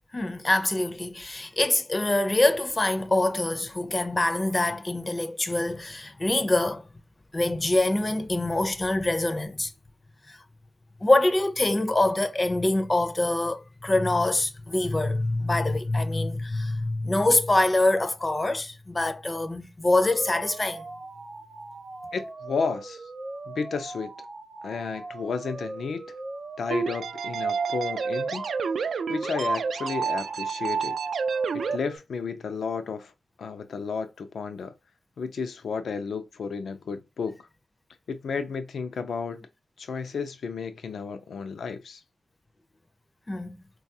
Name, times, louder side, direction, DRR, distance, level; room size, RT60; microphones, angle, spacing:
voice 1, 0.1-6.8 7.3-9.7 10.3-10.4 11.0-20.8 43.3-43.6, left 2 dB, 25° left, 0.4 m, -25 dB
sound 1, 20.0-32.0, right 2 dB, 40° right, 0.6 m, -40 dB
voice 2, 22.1-23.1 23.5-24.1 24.6-26.0 26.6-28.5 29.1-31.0 31.5-33.1 33.4-34.7 35.2-37.4 38.1-39.4 39.8-42.0, left 5 dB, 85° left, 0.4 m, -32 dB
sound 2, 26.7-31.8, right 5 dB, 85° right, 0.3 m, -29 dB
3.9 x 2.3 x 2.7 m
wide cardioid pair, 115°, 0 cm